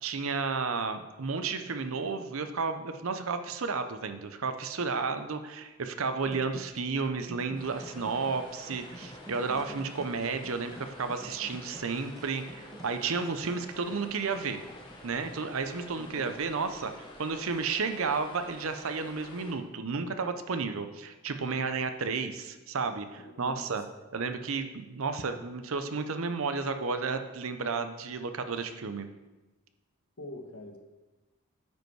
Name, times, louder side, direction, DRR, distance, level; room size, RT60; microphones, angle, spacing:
voice 1, 0.0-14.6 15.0-23.8 24.1-29.1, right 4 dB, 70° right, 8 dB, 0.7 m, -32 dB
sound 1, 6.2-16.3, right 1 dB, 15° right, 0.4 m, -50 dB
sound 2, 7.6-19.5, left 1 dB, 20° left, 1.0 m, -49 dB
voice 2, 15.9-16.3 23.2-23.7 30.2-30.8, left 2 dB, 75° left, 3 dB, 1.2 m, -44 dB
9.2 x 5.3 x 4.7 m, 1.1 s
head